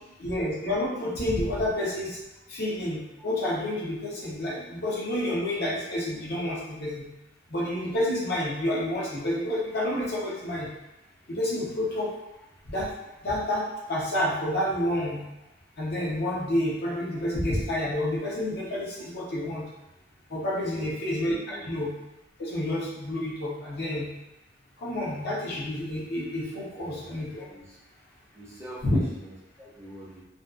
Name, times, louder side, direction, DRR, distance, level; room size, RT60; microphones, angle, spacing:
voice 1, 0.2-2.2 2.5-7.1 7.5-10.7 11.3-12.1 12.7-12.9 13.2-15.2 15.8-19.6 20.3-21.9 22.4-24.1 24.8-27.5 28.8-29.0, left 1 dB, 55° left, -5 dB, 0.6 m, -29 dB
voice 2, 20.6-21.0 21.5-21.7 26.7-27.2 27.5-27.8 28.3-30.2, equal, 15° right, -7 dB, 0.6 m, -45 dB
2.5 x 2.3 x 2.3 m, 0.92 s
head